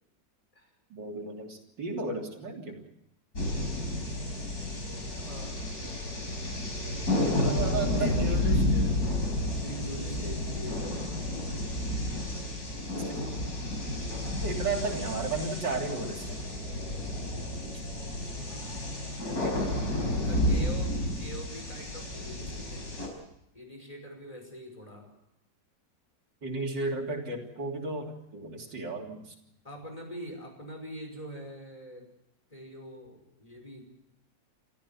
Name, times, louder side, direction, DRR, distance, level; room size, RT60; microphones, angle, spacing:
voice 1, 0.9-2.9 7.2-8.4 13.0-13.2 14.4-16.4 19.4-19.6 19.9-20.1 26.4-29.2, right 3 dB, 80° right, 0 dB, 4.0 m, -34 dB
sound 1, 3.4-23.1, left 1 dB, 55° left, 5.7 m, -31 dB
voice 2, 5.2-5.6 8.0-9.1 9.6-11.8 18.4-18.8 20.1-23.3 23.5-25.1 29.6-32.1 32.5-33.8, equal, 20° left, 3 dB, 5.7 m, -43 dB
29.0 x 14.0 x 7.2 m, 0.80 s
omnidirectional pair, 1.9 m